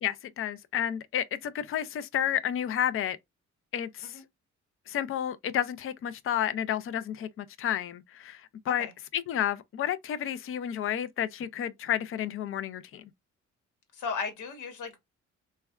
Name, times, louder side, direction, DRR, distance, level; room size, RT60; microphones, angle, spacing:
voice 1, 0.0-3.2 3.7-4.2 4.9-8.9 9.1-13.0, left 10 dB, 45° left, 0.5 m, -31 dB
voice 2, 13.9-15.0, left 5 dB, 85° left, 1.1 m, -35 dB
3.2 x 2.2 x 2.3 m
cardioid pair, 90°, 30 cm